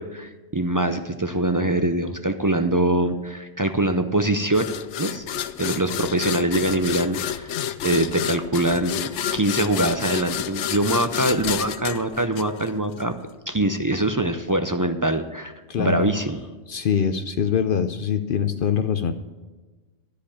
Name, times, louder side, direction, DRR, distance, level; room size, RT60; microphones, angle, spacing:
voice 1, 0.0-4.7 5.0-5.2 5.6-7.5 7.8-13.1 13.5-15.5 15.8-16.4, right 1 dB, 30° right, 7 dB, 0.4 m, -23 dB
sound 1, 4.5-13.0, left 10 dB, 85° left, 0.9 m, -29 dB
voice 2, 15.7-16.1 16.7-19.1, left 7 dB, 55° left, 9 dB, 0.7 m, -23 dB
13.0 x 5.1 x 8.4 m, 1.3 s
omnidirectional pair, 1.2 m